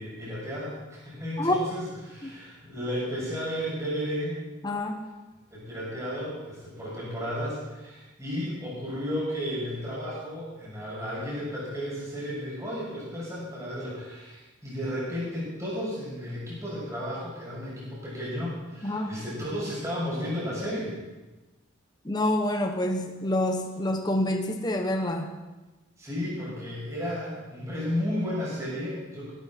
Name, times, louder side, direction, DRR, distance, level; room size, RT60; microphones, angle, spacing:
voice 1, 0.0-4.4 5.5-21.0 26.0-29.3, equal, 15° right, -7 dB, 6.4 m, -33 dB
voice 2, 4.6-5.0 18.8-19.1 22.0-25.3, left 1 dB, 20° left, 4 dB, 0.9 m, -27 dB
16.5 x 13.0 x 4.3 m, 1.1 s
head